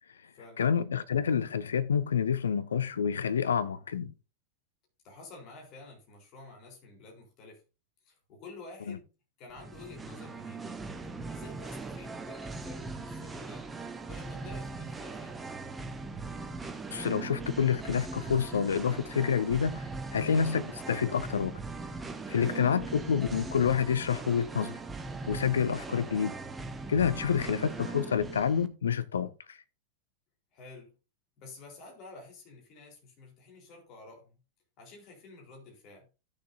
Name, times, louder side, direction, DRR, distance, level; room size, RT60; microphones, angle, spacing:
voice 1, 0.6-4.1 8.9-9.0 16.9-19.8 20.1-21.5 22.3-24.8 25.3-26.3 26.9-29.6, left 7 dB, 65° left, 0.7 m, -28 dB
voice 2, 5.0-7.6 8.0-9.1 9.4-10.7 11.3-13.7 14.0-15.4 22.4-22.7 27.1-27.5 30.5-30.9 31.4-34.4 34.8-36.1, left 3 dB, 40° left, 4.0 m, -50 dB
Singing, 9.5-28.7, right 3 dB, 15° right, 1.1 m, -40 dB
16.0 x 6.6 x 2.7 m
figure-of-eight pair, 90°, 0 cm